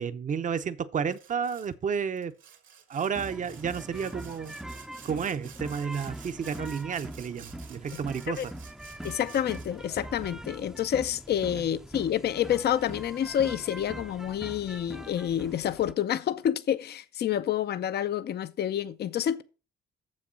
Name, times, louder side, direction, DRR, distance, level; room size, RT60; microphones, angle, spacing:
voice 1, 0.0-2.3 2.9-4.5 5.0-8.5, right 6 dB, 40° right, 0.7 m, -31 dB
Sawing, 1.1-1.7 2.2-9.9, right 8 dB, 70° right, 1.6 m, -52 dB
sound 1, 3.1-15.9, right 1 dB, 5° right, 0.6 m, -42 dB
voice 2, 9.0-19.4, left 10 dB, 55° left, 0.6 m, -28 dB
7.1 x 6.4 x 5.6 m
cardioid pair, 90°, 20 cm